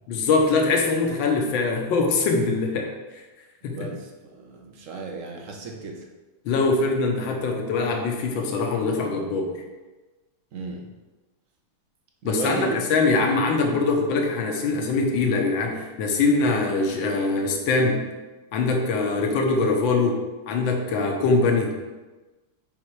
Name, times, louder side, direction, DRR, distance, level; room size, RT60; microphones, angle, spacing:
voice 1, 0.1-2.9 3.6-3.9 6.4-9.5 12.2-18.0 18.5-20.2 20.5-21.8, left 3 dB, 70° left, 2 dB, 1.6 m, -23 dB
voice 2, 3.7-6.1 10.5-10.9 12.2-12.8, right 3 dB, 50° right, 1 dB, 1.0 m, -34 dB
5.9 x 5.4 x 4.7 m, 1.2 s
omnidirectional pair, 2.3 m